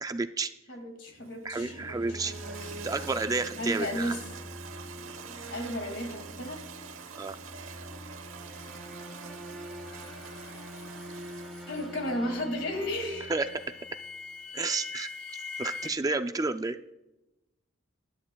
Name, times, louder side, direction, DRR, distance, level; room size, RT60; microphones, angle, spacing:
voice 1, 0.0-0.5 1.4-2.3 2.8-4.1 7.2-7.4 13.3-13.5 14.5-15.1 15.6-16.8, right 3 dB, 20° right, 9 dB, 0.3 m, -30 dB
voice 2, 0.7-2.8 3.6-4.2 5.5-6.7 11.7-13.3, left 1 dB, 65° left, 5 dB, 2.3 m, -34 dB
Toilet flush, 1.1-12.1, right 6 dB, 85° right, 1.0 m, -46 dB
sound 1, 1.5-14.3, equal, ahead, 1.9 m, -45 dB
sound 2, 9.8-15.9, left 4 dB, 80° left, 0.7 m, -44 dB
19.5 x 11.0 x 2.3 m, 0.94 s
head